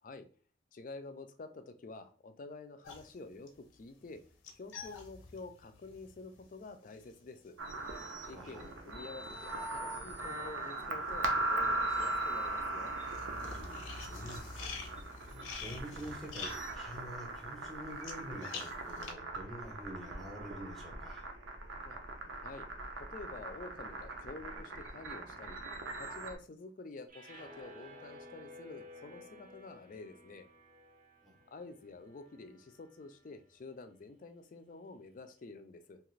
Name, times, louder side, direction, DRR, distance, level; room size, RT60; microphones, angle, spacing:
voice 1, 0.7-4.2 4.6-7.6 8.3-12.9 21.9-22.0 22.4-22.7 23.0-25.6 26.0-30.5 31.5-36.0, left 3 dB, 45° left, 9 dB, 0.4 m, -49 dB
sound 1, 2.8-10.3 10.6-19.1, left 4 dB, 90° left, 0.6 m, -48 dB
sound 2, 7.6-26.3, right 2 dB, 80° right, 0.6 m, -39 dB
voice 2, 8.3-8.7 13.4-21.3 31.2-31.4, equal, ahead, -2 dB, 0.7 m, -47 dB
sound 3, 27.1-33.4, left 1 dB, 40° right, 0.6 m, -54 dB
2.9 x 2.4 x 3.1 m, 0.41 s
head